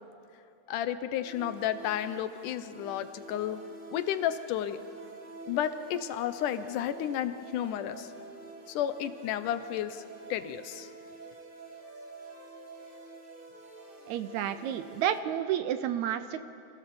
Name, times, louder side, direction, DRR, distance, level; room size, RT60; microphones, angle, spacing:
voice 1, 0.7-3.6 3.9-4.8 5.5-8.1 8.7-10.0 10.3-10.9, left 10 dB, 80° left, 11 dB, 2.3 m, -32 dB
sound 1, 1.2-15.2, right 3 dB, 25° right, 1.3 m, -48 dB
voice 2, 14.1-16.4, right 10 dB, 75° right, 11 dB, 1.8 m, -30 dB
27.0 x 16.0 x 7.0 m, 2.6 s
omnidirectional pair, 3.6 m